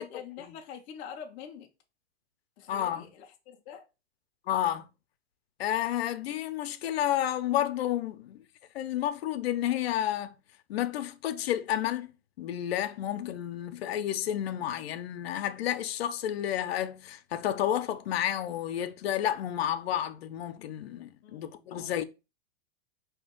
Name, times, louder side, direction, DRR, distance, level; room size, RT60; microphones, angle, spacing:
voice 1, 0.0-1.7 2.6-3.8 21.2-21.7, left 7 dB, 20° left, 0.4 m, -45 dB
voice 2, 2.7-3.1 4.5-4.9 5.6-8.4 8.7-10.3 10.7-12.1 12.4-22.0, left 11 dB, 70° left, 0.6 m, -31 dB
4.3 x 2.8 x 3.7 m
supercardioid pair, 160°, 32 cm